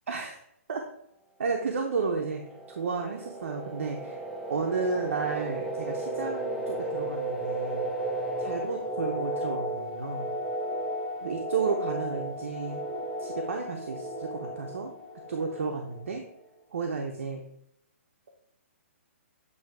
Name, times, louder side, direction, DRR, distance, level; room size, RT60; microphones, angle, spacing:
voice 1, 1.4-2.4 2.8-4.2 4.5-7.9 8.4-10.4 11.2-12.8 13.2-14.9 15.3-16.2 16.7-17.4, right 4 dB, 65° right, 2 dB, 0.8 m, -32 dB
sound 1, 1.7-16.2, right 1 dB, 5° left, 0.4 m, -34 dB
8.3 x 2.8 x 4.6 m, 0.74 s
hypercardioid pair, 175°, 8 cm